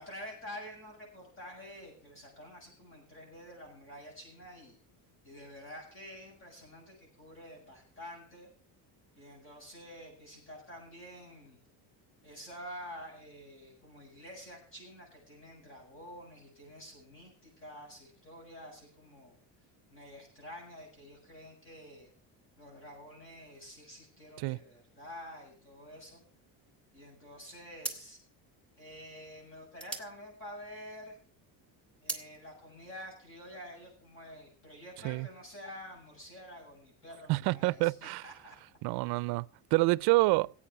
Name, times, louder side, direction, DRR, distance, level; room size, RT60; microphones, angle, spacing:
voice 1, 0.0-4.8 5.2-8.5 9.1-11.6 12.2-19.4 19.9-22.1 22.6-26.2 26.9-28.2 28.8-31.2 32.0-38.6, equal, 30° left, 7.7 m, -48 dB
sound 1, 27.8-31.1 31.5-32.3, right 2 dB, 5° left, 1.3 m, -42 dB
voice 2, 37.3-38.2 38.8-39.5 39.7-40.5, right 22 dB, 65° right, 0.5 m, -27 dB
17.0 x 8.6 x 5.8 m
cardioid pair, 170°, 41 cm